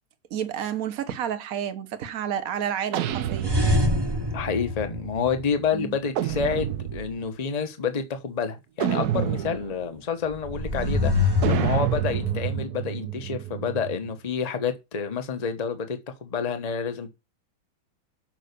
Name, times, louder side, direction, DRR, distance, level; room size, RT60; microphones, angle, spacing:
voice 1, 0.3-3.5 5.7-5.9 9.1-9.4, right 9 dB, 50° right, 1.4 m, -30 dB
sound 1, 2.9-4.2 6.1-7.2 8.8-9.9 11.4-14.1, right 11 dB, 65° right, 1.1 m, -29 dB
sound 2, 3.4-5.8 10.3-12.6, left 2 dB, 15° right, 0.9 m, -25 dB
voice 2, 4.3-17.1, left 6 dB, 25° left, 1.0 m, -29 dB
7.5 x 5.5 x 6.7 m
omnidirectional pair, 2.2 m